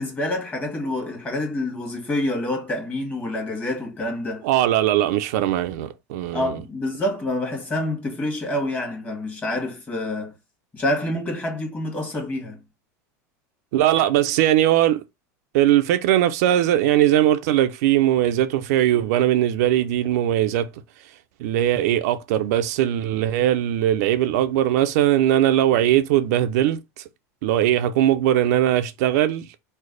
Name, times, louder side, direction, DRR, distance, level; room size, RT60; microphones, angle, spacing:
voice 1, 0.0-4.5 6.3-10.4 10.7-12.6, left 1 dB, 20° left, 1.3 m, -27 dB
voice 2, 4.4-6.6 13.7-15.0 15.5-20.7 21.4-27.0 27.4-29.5, right 12 dB, 70° right, 0.4 m, -20 dB
3.2 x 2.0 x 3.7 m
supercardioid pair, 120°, 9 cm